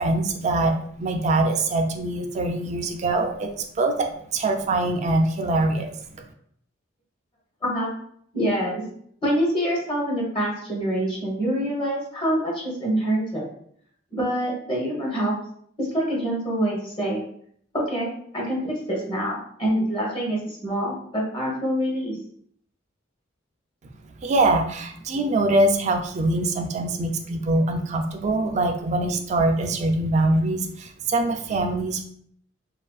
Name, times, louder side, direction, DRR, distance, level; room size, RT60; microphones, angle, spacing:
voice 1, 0.0-5.9 24.2-32.0, right 2 dB, 35° right, 4 dB, 0.3 m, -23 dB
voice 2, 8.3-8.8 9.2-13.4 14.1-15.3 15.8-17.2 17.7-22.2, equal, 30° left, -3 dB, 0.8 m, -26 dB
2.8 x 2.4 x 2.3 m, 0.65 s
head